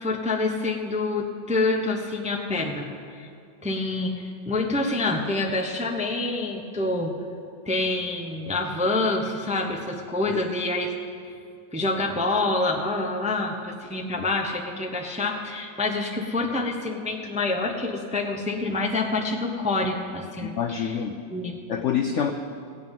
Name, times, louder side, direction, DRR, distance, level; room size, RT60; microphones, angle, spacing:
voice 1, 0.0-3.3 3.6-7.1 7.7-10.9 11.7-21.0 21.3-21.6, left 2 dB, 10° right, 1 dB, 0.4 m, -27 dB
voice 2, 20.4-21.1 21.7-22.3, left 8 dB, 85° left, 6 dB, 0.6 m, -26 dB
16.0 x 5.5 x 9.0 m, 2.4 s
omnidirectional pair, 2.0 m